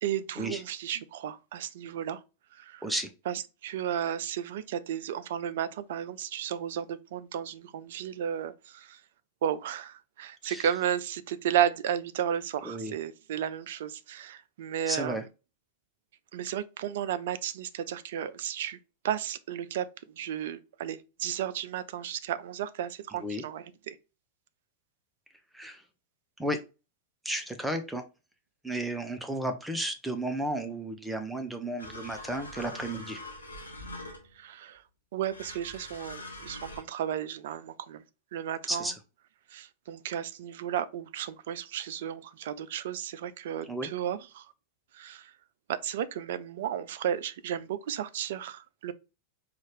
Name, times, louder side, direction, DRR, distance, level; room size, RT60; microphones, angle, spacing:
voice 1, 0.0-2.2 2.5-2.8 3.3-9.0 9.4-15.2 16.3-18.8 19.0-19.9 20.2-24.0 34.4-34.8 35.1-38.0 38.3-38.9 39.5-44.5 44.9-45.3 45.7-48.9, right 10 dB, 55° right, 0.4 m, -33 dB
voice 2, 14.9-15.2 23.1-23.4 25.5-25.8 26.4-26.6 27.2-28.0 28.6-33.2 38.7-39.0 43.7-43.9, right 1 dB, 5° right, 0.6 m, -33 dB
sound 1, 31.8-34.4 35.3-36.8, left 1 dB, 80° left, 0.8 m, -43 dB
3.9 x 2.5 x 3.4 m
figure-of-eight pair, 90°, 0 cm